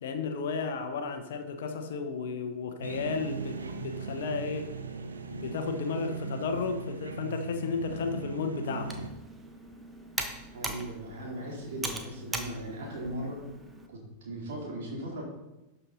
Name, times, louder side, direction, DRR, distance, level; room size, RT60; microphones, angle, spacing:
voice 1, 0.0-4.7 5.3-8.9, left 5 dB, 60° left, 7 dB, 1.0 m, -33 dB
sound 1, 2.8-9.1, right 4 dB, 75° right, 0.8 m, -38 dB
Computer keyboard, 8.7-13.9, right 2 dB, 10° right, 1.2 m, -40 dB
voice 2, 10.5-13.4 13.9-15.2, right 1 dB, 55° right, -3 dB, 3.5 m, -38 dB
12.0 x 5.7 x 4.0 m, 0.97 s
figure-of-eight pair, 90°, 0 cm